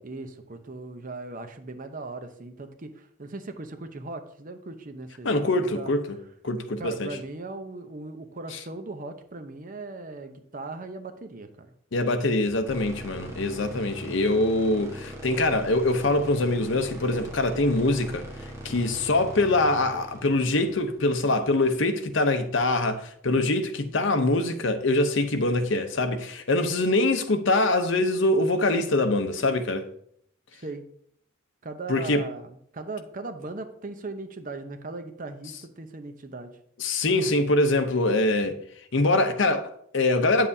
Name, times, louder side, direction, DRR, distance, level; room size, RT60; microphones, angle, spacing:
voice 1, 0.0-5.5 5.7-5.9 6.8-11.7 15.6-15.7 30.5-30.8 31.6-36.6, right 3 dB, 40° right, 0.7 m, -38 dB
voice 2, 5.2-6.0 6.4-7.1 8.5-8.6 11.9-18.2 18.6-29.9 31.9-32.2 36.8-38.6 38.9-40.5, left 2 dB, 65° left, 0.8 m, -24 dB
sound 1, 12.7-21.9, right 1 dB, 15° right, 1.4 m, -41 dB
8.5 x 7.4 x 2.7 m
head